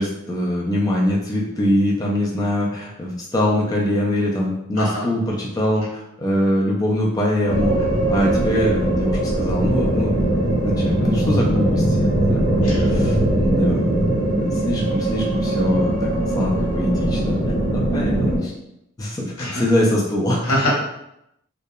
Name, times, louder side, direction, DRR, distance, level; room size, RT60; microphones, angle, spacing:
voice 1, 0.0-10.2 10.6-16.1 16.3-17.4 17.7-18.5 19.0-20.6, left 1 dB, 20° left, -3 dB, 0.3 m, -23 dB
voice 2, 4.8-5.1 12.6-12.9 19.4-19.6 20.4-20.8, left 1 dB, 85° left, -4 dB, 0.9 m, -23 dB
sound 1, 7.5-18.4, right 1 dB, 35° left, 0.9 m, -20 dB
2.7 x 2.1 x 2.2 m, 0.81 s
head